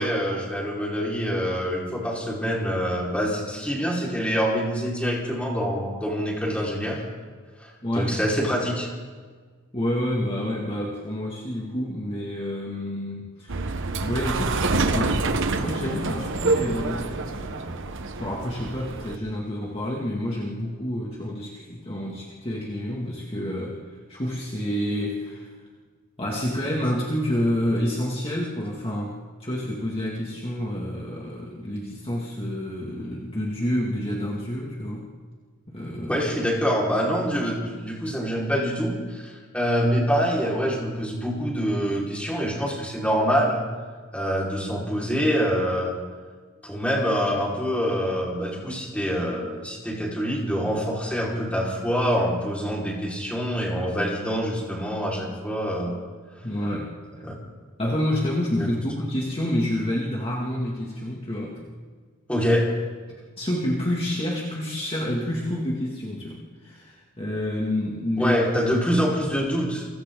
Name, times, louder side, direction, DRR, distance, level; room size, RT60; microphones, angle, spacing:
voice 1, 0.0-7.0 7.6-8.9 36.1-43.6 44.1-46.0 46.6-56.0 57.2-57.3 62.3-62.7 68.2-69.9, equal, 5° left, -4 dB, 4.9 m, -25 dB
voice 2, 7.8-8.2 9.7-13.7 14.0-17.8 18.2-25.5 26.2-35.1 35.7-36.2 56.4-56.9 57.2-57.3 57.8-61.7 63.4-68.4, left 1 dB, 25° left, -3 dB, 2.4 m, -28 dB
sound 1, 13.5-19.2, right 3 dB, 60° right, 1.1 m, -27 dB
29.0 x 25.0 x 4.0 m, 1.5 s
head